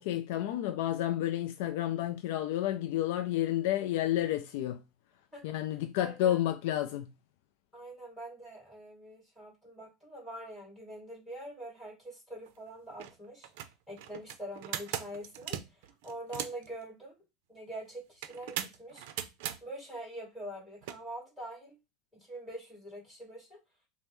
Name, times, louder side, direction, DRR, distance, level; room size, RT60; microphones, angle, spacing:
voice 1, 0.0-4.8 5.4-7.1, left 12 dB, 70° left, 0.3 m, -30 dB
voice 2, 6.0-6.4 7.7-13.5 13.9-17.2 17.5-19.0 19.6-21.8 22.2-23.6, right 1 dB, 5° left, 2.5 m, -44 dB
sound 1, 12.5-12.6 12.9-13.1 13.4-16.7 18.2-19.6 20.8-21.0, right 11 dB, 65° right, 0.5 m, -39 dB
5.3 x 2.0 x 3.0 m
supercardioid pair, 155°, 0 cm